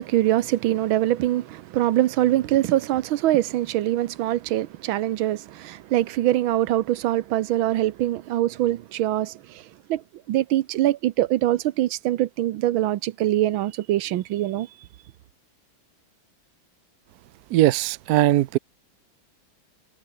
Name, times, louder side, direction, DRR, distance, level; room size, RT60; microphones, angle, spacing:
voice 1, 0.0-9.6 9.9-10.0 10.3-14.7, right 14 dB, 85° right, 1.6 m, -23 dB
voice 2, 17.5-18.6, right 15 dB, 70° right, 0.9 m, -19 dB
omnidirectional pair, 2.1 m